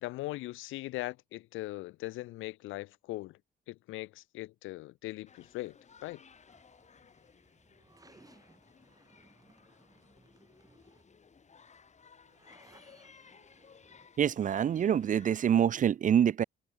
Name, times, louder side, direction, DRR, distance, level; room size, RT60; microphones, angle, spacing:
voice 1, 0.0-3.4 3.7-6.2, left 18 dB, 85° left, 0.5 m, -40 dB
sound 1, 5.3-15.6, left 6 dB, 35° left, 1.4 m, -59 dB
sound 2, 6.3-14.1, right 2 dB, 20° right, 4.0 m, -63 dB
voice 2, 14.2-16.4, right 9 dB, 40° right, 0.4 m, -26 dB
cardioid pair, 90°, 20 cm